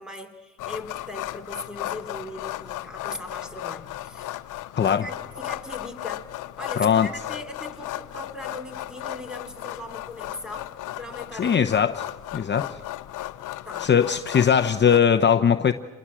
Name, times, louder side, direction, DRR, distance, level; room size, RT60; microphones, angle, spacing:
voice 1, 0.0-4.4 4.9-6.3 6.6-10.7 11.0-11.7 13.6-13.9, left 1 dB, 5° right, 7 dB, 3.3 m, -39 dB
sound 1, 0.6-15.0, left 15 dB, 85° left, 0.7 m, -35 dB
voice 2, 4.7-5.1 6.8-7.1 11.4-12.1 12.3-12.8 13.8-15.7, left 7 dB, 35° left, 8 dB, 0.9 m, -20 dB
27.5 x 21.5 x 7.6 m, 1.2 s
cardioid pair, 90°, 30 cm